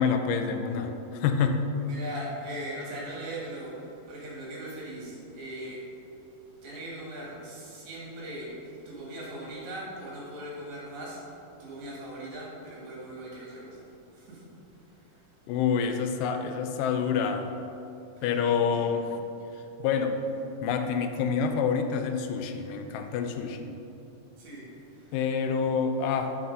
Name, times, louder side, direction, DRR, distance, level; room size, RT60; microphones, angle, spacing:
voice 1, 0.0-1.6 15.5-17.5 18.2-19.2 19.8-20.2 20.6-23.8 25.1-26.4, left 6 dB, 80° left, 6 dB, 2.1 m, -27 dB
voice 2, 1.9-6.1 6.6-11.2 11.6-13.8 14.1-15.3 18.2-18.3 18.7-18.8 24.4-25.2, right 1 dB, 60° right, -5 dB, 3.1 m, -40 dB
7.4 x 5.9 x 5.4 m, 2.8 s
omnidirectional pair, 3.9 m